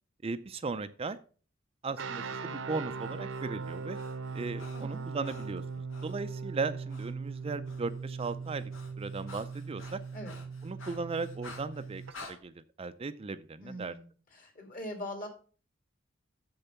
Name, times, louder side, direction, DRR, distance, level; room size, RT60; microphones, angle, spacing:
voice 1, 0.2-1.2 1.8-4.0 4.3-8.7 9.0-10.0 10.6-12.0 12.3-13.9, right 4 dB, 30° right, 11 dB, 0.4 m, -37 dB
sound 1, 2.0-12.1, right 5 dB, 70° right, 0.8 m, -40 dB
Breathing, 3.0-6.2 6.9-7.1 7.4-12.4, left 3 dB, 80° left, 2.2 m, -51 dB
voice 2, 4.7-5.1 10.1-10.4 13.6-14.0 14.3-15.3, left 1 dB, 45° left, 5 dB, 2.5 m, -41 dB
7.2 x 6.7 x 5.7 m, 0.39 s
head